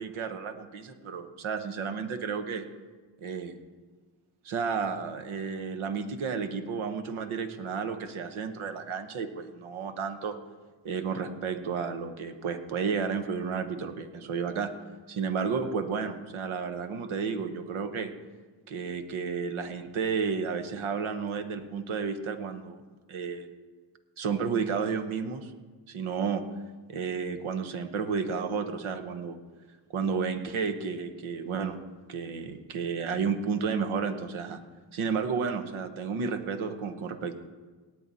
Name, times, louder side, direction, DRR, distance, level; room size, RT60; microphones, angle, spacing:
voice 1, 0.0-2.6 3.2-3.6 4.4-10.4 10.8-14.7 15.1-18.1 18.7-22.8 23.1-23.5 24.2-25.5 25.9-26.4 26.9-29.4 29.9-31.8 32.1-34.6 34.9-37.4, right 5 dB, 70° right, 8 dB, 1.3 m, -32 dB
17.5 x 9.1 x 4.2 m, 1.4 s
cardioid pair, 100°, 50 cm